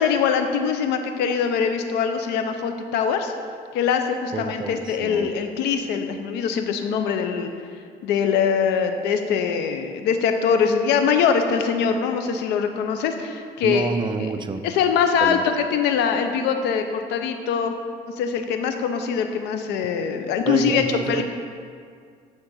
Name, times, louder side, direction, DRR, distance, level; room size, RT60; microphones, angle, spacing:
voice 1, 0.0-3.3 3.7-7.5 8.0-13.9 14.6-17.7 18.2-21.2, left 6 dB, 90° left, 7 dB, 0.7 m, -23 dB
voice 2, 4.3-5.3 13.6-14.6 15.2-15.4 20.5-21.2, right 4 dB, 25° right, 8 dB, 0.5 m, -28 dB
9.4 x 3.9 x 5.5 m, 2.2 s
cardioid pair, 110°, 17 cm